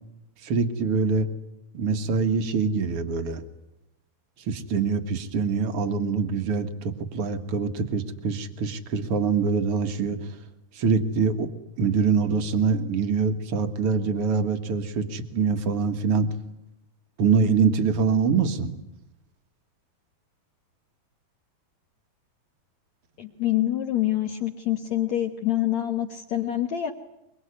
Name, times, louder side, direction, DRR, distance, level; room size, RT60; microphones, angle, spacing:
voice 1, 0.4-1.3 1.7-3.4 4.5-10.3 10.7-11.5 11.8-16.3 17.2-18.7, right 5 dB, 55° right, 8 dB, 1.7 m, -24 dB
voice 2, 23.2-26.9, left 13 dB, 60° left, 5 dB, 1.9 m, -26 dB
24.0 x 23.0 x 9.8 m, 0.88 s
omnidirectional pair, 4.7 m